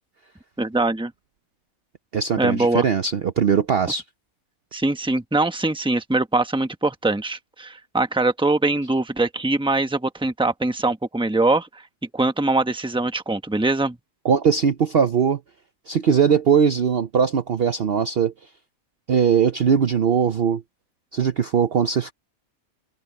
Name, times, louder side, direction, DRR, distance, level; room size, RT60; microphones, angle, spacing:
voice 1, 0.6-1.1 2.4-2.8 4.7-11.8 12.1-14.0, right 2 dB, 5° right, 1.1 m, -22 dB
voice 2, 2.1-4.0 14.2-15.4 15.9-18.3 19.1-20.6 21.1-22.1, right 7 dB, 50° right, 0.9 m, -20 dB
omnidirectional pair, 1.5 m